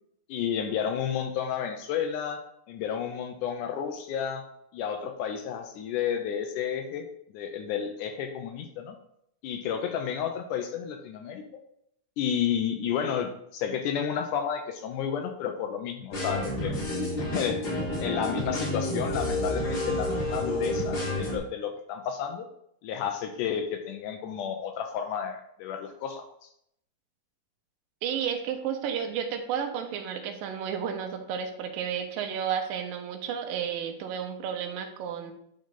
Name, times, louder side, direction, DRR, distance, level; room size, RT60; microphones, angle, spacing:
voice 1, 0.3-2.4 2.7-4.4 4.7-7.1 7.3-9.0 9.4-11.4 12.2-16.8 17.2-17.7 18.0-22.5 22.8-26.2, left 8 dB, 80° left, 5 dB, 1.9 m, -31 dB
sound 1, 16.1-21.4, left 1 dB, 55° left, 4.4 m, -30 dB
voice 2, 28.0-35.3, right 8 dB, 85° right, 6 dB, 2.5 m, -32 dB
10.0 x 3.8 x 3.7 m, 0.74 s
omnidirectional pair, 4.0 m